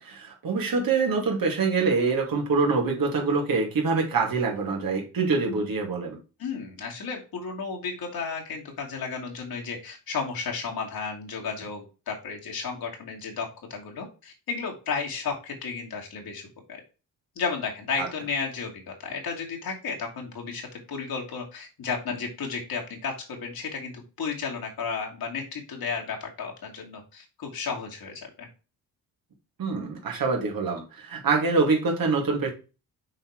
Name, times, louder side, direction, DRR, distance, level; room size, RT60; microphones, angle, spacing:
voice 1, 0.0-6.2 18.0-18.1 29.6-32.5, right 4 dB, 60° right, 0 dB, 2.6 m, -25 dB
voice 2, 6.4-16.8 17.4-28.5, left 5 dB, 65° left, 0 dB, 2.7 m, -33 dB
6.4 x 4.3 x 4.7 m, 0.32 s
cardioid pair, 95°, 39 cm